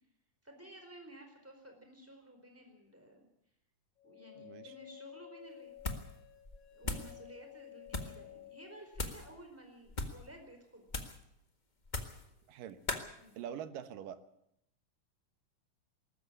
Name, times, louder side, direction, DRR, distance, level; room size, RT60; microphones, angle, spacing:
voice 1, 0.4-3.2 4.0-5.7 6.7-10.9 13.2-13.4, right 1 dB, 5° right, 4 dB, 4.3 m, -54 dB
sound 1, 4.0-8.9, left 13 dB, 65° left, 2.9 m, -54 dB
voice 2, 4.4-4.7 6.8-7.0 12.5-12.8 13.4-14.2, right 9 dB, 85° right, 11 dB, 2.9 m, -44 dB
sound 2, 5.8-6.2 6.4-7.1 7.9-8.2 8.9-9.3 9.9-10.2 10.9-11.2 11.8-12.3 12.9-13.1, left 2 dB, 50° left, 0.5 m, -39 dB
19.5 x 14.0 x 10.0 m, 0.78 s
omnidirectional pair, 3.7 m